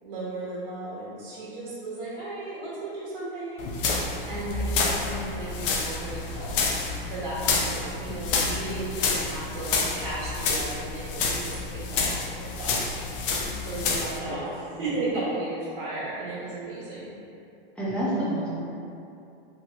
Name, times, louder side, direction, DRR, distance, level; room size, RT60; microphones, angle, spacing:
voice 1, 0.0-6.6 7.0-12.1 12.4-13.0 13.6-17.1, right 2 dB, 65° right, -10 dB, 1.2 m, -35 dB
sound 1, 3.6-14.2, left 4 dB, 60° left, 0.5 m, -29 dB
voice 2, 17.8-18.5, right 1 dB, 5° left, -9 dB, 0.5 m, -28 dB
3.0 x 2.7 x 2.7 m, 2.7 s
hypercardioid pair, 135°, 30 cm